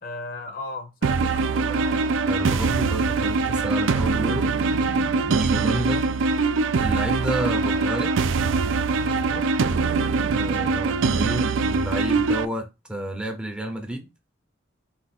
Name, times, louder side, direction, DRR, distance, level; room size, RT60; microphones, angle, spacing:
voice 1, 0.0-2.2 9.0-9.5, left 2 dB, 50° left, 0.9 m, -37 dB
sound 1, 1.0-12.5, right 4 dB, 90° right, 0.4 m, -23 dB
voice 2, 2.3-4.5 5.3-6.0 6.8-8.1 10.3-14.1, right 1 dB, 5° right, 0.6 m, -30 dB
4.4 x 2.4 x 4.1 m
head